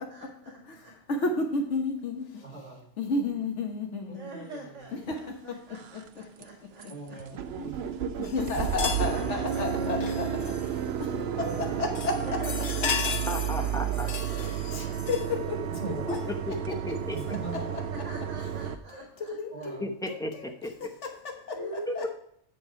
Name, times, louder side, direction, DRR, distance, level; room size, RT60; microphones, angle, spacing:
voice 1, 0.1-0.5 0.8-0.9 4.1-6.9 8.5-8.6 9.1-9.6 12.2-13.7 13.9-14.5 14.8-15.0 18.0-19.7 20.2-20.3 21.5-22.1, equal, 85° right, 0 dB, 2.1 m, -43 dB
voice 2, 1.1-2.2 3.0-4.2 4.9-5.1 5.5-5.6 7.6-7.9 8.2-10.3 11.6-12.2 14.2-15.6 16.1-16.2 18.9-19.8 20.1-20.5 21.0-21.6 21.9-22.1, left 3 dB, 75° left, 3 dB, 1.4 m, -31 dB
voice 3, 2.4-2.8 4.1-4.9 6.9-7.3 11.4-11.8 15.7-16.1 17.1-17.9 19.5-19.9, right 4 dB, 35° right, -5 dB, 3.1 m, -40 dB
sound 1, 5.1-5.2 5.7-6.1 6.4-6.5 6.8-6.9 7.2-18.8, right 8 dB, 65° right, 0.8 m, -32 dB
sound 2, 8.2-10.9 11.4-11.7 11.9-15.4 16.1-16.2 17.1-17.3, left 6 dB, 50° left, 0.8 m, -36 dB
voice 4, 13.3-14.1 16.5-17.2 19.8-20.9, left 1 dB, 5° left, 4 dB, 0.6 m, -35 dB
8.8 x 5.2 x 4.6 m, 0.68 s
omnidirectional pair, 1.2 m